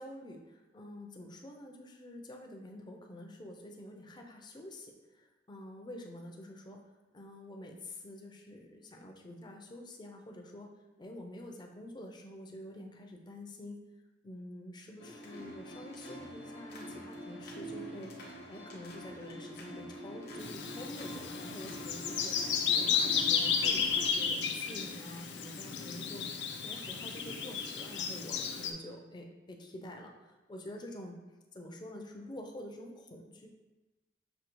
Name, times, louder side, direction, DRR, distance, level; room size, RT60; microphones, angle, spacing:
voice 1, 0.0-4.9 5.2-6.8 7.1-10.7 11.0-13.8 14.2-18.1 18.5-22.4 22.7-26.3 26.6-31.2 31.5-33.5, left 1 dB, 25° left, 2 dB, 0.5 m, -47 dB
sound 1, 15.0-24.1, equal, 60° left, 0.9 m, -45 dB
Bird vocalization bird call bird song, 20.4-28.7, left 6 dB, 80° left, 0.5 m, -33 dB
6.2 x 2.8 x 3.0 m, 1.1 s
head